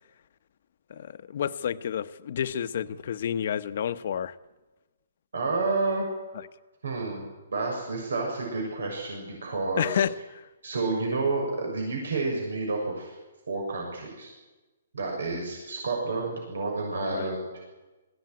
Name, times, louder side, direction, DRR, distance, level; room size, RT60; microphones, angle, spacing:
voice 1, 0.9-4.3 9.8-10.2 16.9-17.3, left 9 dB, 50° left, 0.9 m, -30 dB
voice 2, 5.3-6.1 6.8-7.2 7.5-10.0 10.6-13.2 13.5-14.3 14.9-17.5, right 3 dB, 90° right, 6.9 m, -30 dB
21.0 x 16.5 x 9.5 m
hypercardioid pair, 165°, 0 cm